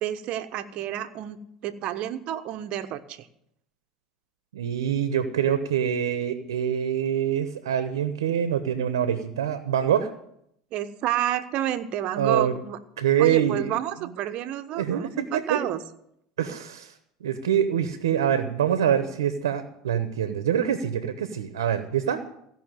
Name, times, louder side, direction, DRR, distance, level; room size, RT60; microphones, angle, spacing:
voice 1, 0.0-1.4 1.6-3.3 10.7-12.8 13.2-15.8, right 12 dB, 55° right, 9 dB, 1.1 m, -30 dB
voice 2, 4.5-10.1 12.2-12.5 13.0-13.8 14.8-15.6 16.4-16.9 17.2-22.2, right 9 dB, 90° right, 10 dB, 1.0 m, -25 dB
15.5 x 5.9 x 9.1 m, 0.75 s
hypercardioid pair, 85°, 2 cm